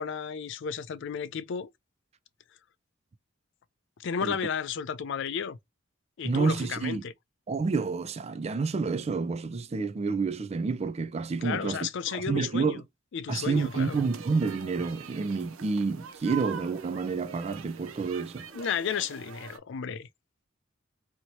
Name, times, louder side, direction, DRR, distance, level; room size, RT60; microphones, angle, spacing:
voice 1, 0.0-1.7 4.0-5.6 6.2-7.1 11.4-12.8 13.1-14.0 18.5-20.1, left 7 dB, 65° left, 0.4 m, -33 dB
voice 2, 6.2-7.0 7.5-11.8 12.1-12.8 13.3-18.5, right 4 dB, 30° right, 0.4 m, -29 dB
sound 1, 13.5-19.6, right 7 dB, 90° right, 0.6 m, -44 dB
3.0 x 2.7 x 2.8 m
head